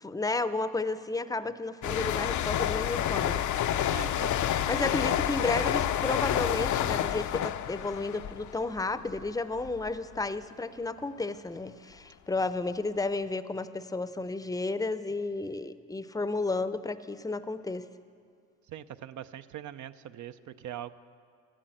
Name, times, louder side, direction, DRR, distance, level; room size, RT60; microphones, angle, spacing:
voice 1, 0.0-4.0 4.7-17.9, left 3 dB, 10° left, 13 dB, 0.6 m, -32 dB
sound 1, 1.8-9.3 9.6-9.9, left 10 dB, 60° left, 0.6 m, -29 dB
voice 2, 3.9-4.3 18.7-20.9, right 11 dB, 60° right, 12 dB, 0.6 m, -41 dB
14.5 x 10.0 x 7.8 m, 2.2 s
supercardioid pair, 65°, 34 cm